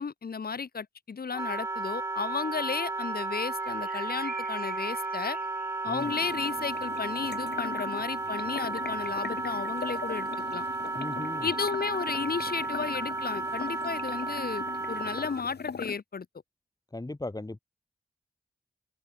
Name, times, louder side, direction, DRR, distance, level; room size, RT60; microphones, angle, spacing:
voice 1, 0.0-5.4 5.8-10.6 11.4-16.2, left 5 dB, 65° left, 1.6 m, -33 dB
Wind instrument woodwind instrument, 1.3-15.4, right 3 dB, 20° right, 0.3 m, -33 dB
sound 1, 2.2-2.4 3.6-6.2, right 4 dB, 60° right, 4.3 m, -46 dB
sound 2, 6.0-15.9, left 6 dB, 85° left, 2.3 m, -41 dB
voice 2, 11.0-11.5 16.9-17.6, left 2 dB, 20° left, 2.0 m, -37 dB
wide cardioid pair, 65°, 17 cm